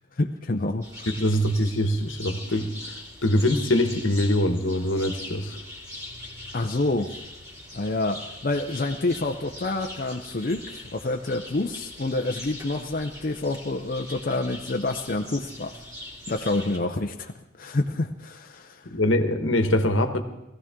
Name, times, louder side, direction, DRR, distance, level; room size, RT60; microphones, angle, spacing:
voice 1, 0.2-0.9 6.5-7.1 7.7-15.8 16.3-17.3 17.6-18.9, left 2 dB, 45° left, 3 dB, 0.6 m, -28 dB
sound 1, 0.8-16.8, left 1 dB, 15° right, 2.7 m, -41 dB
voice 2, 1.1-2.7 3.2-5.6 18.9-20.2, left 1 dB, 75° left, 7 dB, 1.2 m, -23 dB
20.0 x 15.0 x 3.7 m, 0.94 s
head